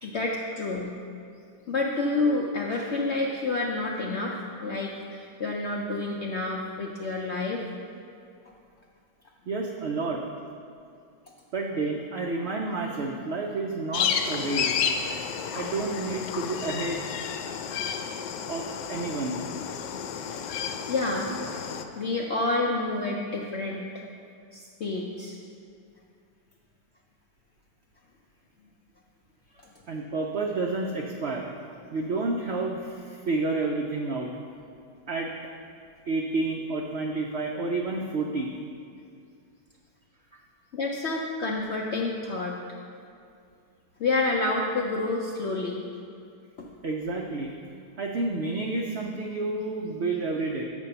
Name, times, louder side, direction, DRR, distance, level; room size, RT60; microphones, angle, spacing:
voice 1, 0.0-0.9 1.7-7.6 20.9-21.3 22.0-23.8 24.5-25.4 40.7-42.6 44.0-45.8 46.6-46.7, left 2 dB, 70° left, -1 dB, 0.6 m, -29 dB
voice 2, 9.5-10.2 11.5-14.9 15.5-17.0 18.5-19.4 29.9-31.5 31.9-34.3 35.1-35.3 36.1-38.5 40.3-40.4 46.8-47.5 48.0-50.6, right 3 dB, 90° right, 1 dB, 0.5 m, -30 dB
sound 1, 13.9-21.8, left 7 dB, 90° left, 1.2 m, -31 dB
7.3 x 5.3 x 6.7 m, 2.4 s
omnidirectional pair, 1.9 m